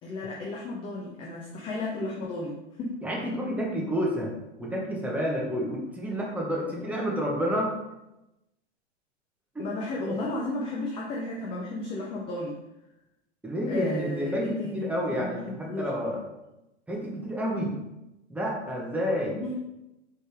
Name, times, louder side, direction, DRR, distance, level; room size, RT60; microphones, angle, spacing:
voice 1, 0.0-3.0 9.6-12.6 13.7-15.9 19.3-19.7, left 2 dB, 15° left, -2 dB, 0.4 m, -34 dB
voice 2, 3.0-4.3 4.6-7.7 9.5-9.7 10.0-10.2 13.4-16.2 16.9-17.8 18.3-19.4, equal, 5° right, -3 dB, 0.8 m, -29 dB
4.2 x 3.3 x 3.3 m, 0.93 s
hypercardioid pair, 120°, 36 cm